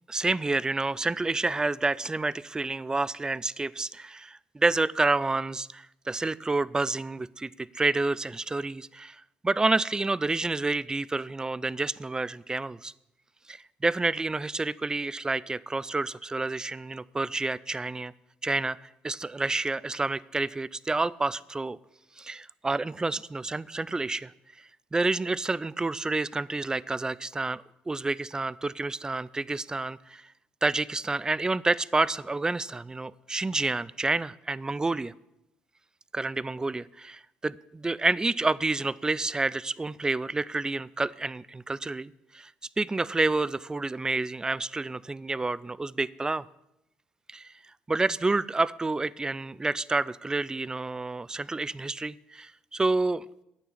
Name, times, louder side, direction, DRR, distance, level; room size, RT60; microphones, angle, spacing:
voice 1, 0.1-12.9 13.5-18.1 18.4-21.8 22.2-24.3 24.9-30.2 30.6-35.1 36.1-42.5 42.8-46.4 47.3-47.5 47.9-53.4, right 3 dB, 15° right, 21 dB, 0.4 m, -29 dB
9.3 x 6.8 x 7.4 m, 0.86 s
supercardioid pair, 65°, 4 cm